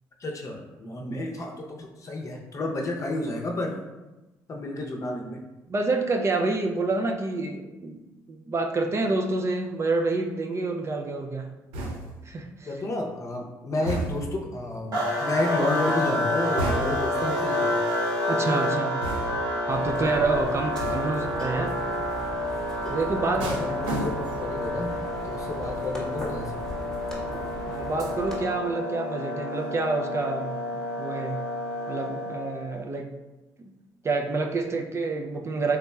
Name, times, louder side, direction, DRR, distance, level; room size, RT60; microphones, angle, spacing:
voice 1, 0.2-3.8 4.5-5.4 12.6-17.8 20.0-20.4 22.8-22.9 23.4-24.9 25.2-26.5, left 2 dB, 45° left, 0 dB, 0.7 m, -31 dB
voice 2, 5.7-8.0 8.3-11.5 12.2-12.8 13.8-13.9 18.3-19.0 19.7-21.8 22.9-23.7 27.7-30.6 31.0-31.4 31.9-33.1 33.6-33.7 34.0-35.8, right 3 dB, 35° right, 3 dB, 0.4 m, -28 dB
sound 1, 11.7-12.3 13.9-14.4 16.6-17.2 19.0-19.6 20.8-21.3 23.4-24.5 24.9-25.3, right 1 dB, 85° right, 0.6 m, -32 dB
sound 2, 14.9-32.8, left 1 dB, 55° right, 1.0 m, -29 dB
sound 3, 19.7-28.4, equal, 10° left, 1.0 m, -39 dB
3.4 x 2.9 x 2.3 m, 1.1 s
supercardioid pair, 65°, 8 cm